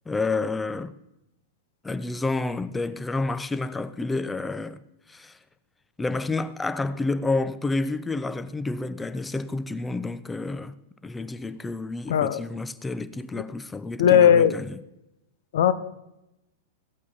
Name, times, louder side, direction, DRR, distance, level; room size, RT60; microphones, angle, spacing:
voice 1, 0.1-0.9 1.8-4.8 5.1-5.4 6.0-10.7 11.0-14.8, left 3 dB, 10° left, 0.6 m, -29 dB
voice 2, 12.1-12.4 13.3-13.4 14.0-14.6 15.5-15.7, left 9 dB, 65° left, 0.8 m, -17 dB
15.0 x 8.5 x 4.1 m
hypercardioid pair, 100°, 0 cm